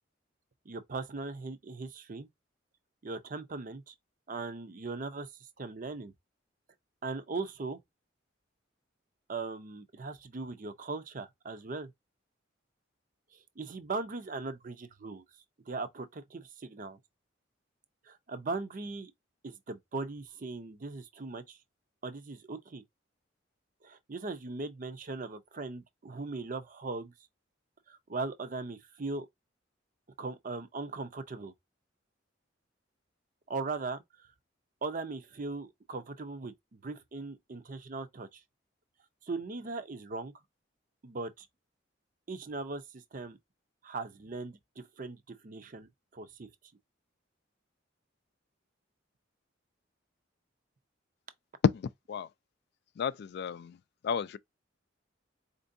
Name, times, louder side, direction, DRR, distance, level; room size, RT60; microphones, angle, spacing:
voice 1, 0.7-2.3 3.0-3.9 4.3-5.3 5.6-6.1 7.0-7.8 9.3-11.9 13.6-15.2 15.7-17.0 18.1-19.1 19.4-21.6 22.0-22.8 23.8-27.1 27.9-29.3 30.2-31.5 33.5-34.0 34.8-36.5 36.8-38.4 39.3-40.3 41.0-41.5 42.3-43.4 43.8-46.5, right 3 dB, 45° right, 0.6 m, -39 dB
voice 2, 51.7-52.3 53.0-53.8 54.0-54.4, left 7 dB, 55° left, 0.3 m, -35 dB
4.4 x 2.6 x 2.6 m
head